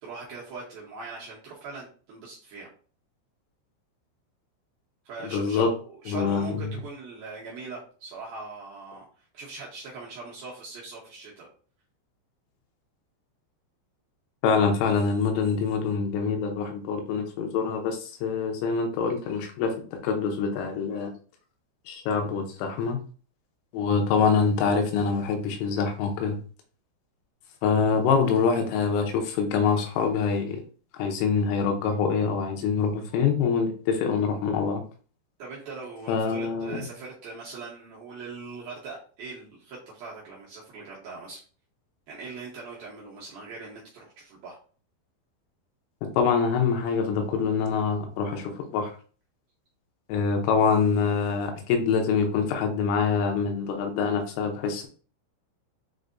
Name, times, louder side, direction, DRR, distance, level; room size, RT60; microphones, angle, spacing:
voice 1, 0.0-2.7 5.0-5.7 6.0-9.1 9.3-11.5 35.4-41.4 42.1-44.6, right 4 dB, 80° right, -5 dB, 2.1 m, -41 dB
voice 2, 5.3-5.7 6.1-6.7 14.4-19.8 20.0-21.1 21.9-23.0 23.7-26.4 27.6-30.6 31.0-34.8 36.1-36.9 46.2-48.9 50.1-54.9, left 5 dB, 85° left, 4 dB, 3.3 m, -25 dB
7.7 x 2.6 x 2.6 m, 0.40 s
omnidirectional pair, 5.6 m